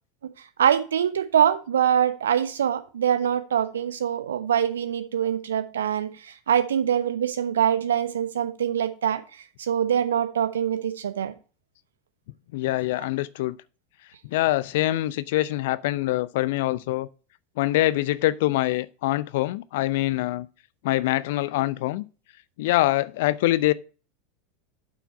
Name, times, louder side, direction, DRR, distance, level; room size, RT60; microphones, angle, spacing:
voice 1, 0.6-9.2 9.6-11.3, right 9 dB, 75° right, 1.0 m, -24 dB
voice 2, 12.5-13.6 14.2-17.1 17.6-20.5 20.8-22.0 22.6-23.7, left 16 dB, 60° left, 0.5 m, -24 dB
7.8 x 5.9 x 4.4 m
figure-of-eight pair, 85°, 0 cm